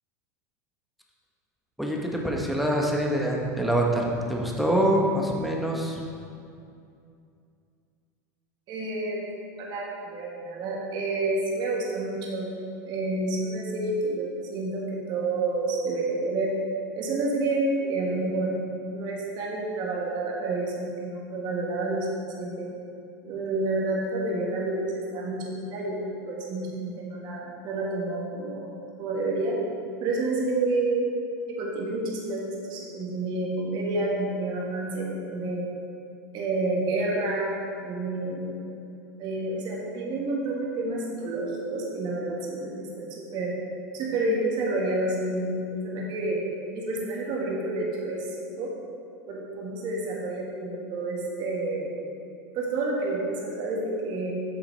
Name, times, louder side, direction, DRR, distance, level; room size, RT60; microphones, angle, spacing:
voice 1, 1.8-6.0, right 1 dB, ahead, -1 dB, 1.0 m, -25 dB
voice 2, 8.7-9.2 9.6-12.5 12.9-16.5 16.9-18.6 18.9-22.7 23.2-28.7 29.0-29.6 30.0-31.1 31.5-35.7 36.3-38.6 39.2-43.6 43.9-46.4 46.7-48.7 49.3-51.9 52.5-54.4, right 2 dB, 45° right, -2 dB, 1.6 m, -29 dB
8.3 x 5.7 x 3.3 m, 2.5 s
hypercardioid pair, 105°, 10 cm